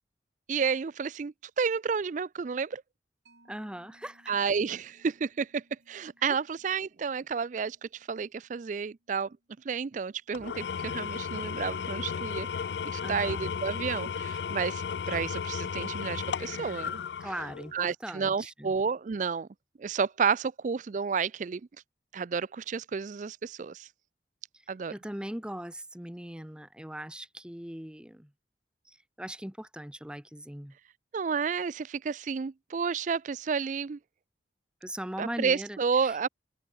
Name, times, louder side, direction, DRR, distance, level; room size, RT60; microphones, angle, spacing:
voice 1, 0.5-2.8 4.3-9.4 9.6-12.6 12.9-17.3 17.7-19.5 19.8-21.6 22.1-23.9 24.7-24.9 31.1-34.0 35.2-36.3, right 5 dB, 45° right, 0.4 m, -31 dB
Mallet percussion, 3.3-10.3, right 1 dB, 75° right, 7.8 m, -66 dB
voice 2, 3.5-4.3 13.0-13.5 17.2-18.7 24.9-28.3 28.9-30.7 34.8-35.8 36.0-36.3, right 1 dB, 5° right, 0.9 m, -40 dB
Engine / Tools, 10.3-17.8, left 6 dB, 75° left, 0.4 m, -34 dB
open air
head